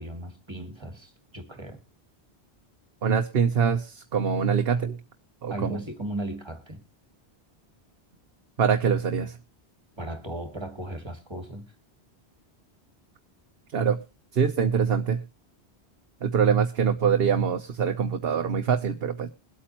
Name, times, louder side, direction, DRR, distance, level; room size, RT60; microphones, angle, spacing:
voice 1, 0.0-1.8 5.5-6.8 10.0-11.6, right 1 dB, 25° right, 2.3 m, -36 dB
voice 2, 3.0-5.0 5.4-5.8 8.6-9.4 13.7-14.0 14.3-15.2 16.2-19.3, right 7 dB, 70° right, 1.1 m, -24 dB
22.5 x 8.5 x 3.0 m
omnidirectional pair, 1.1 m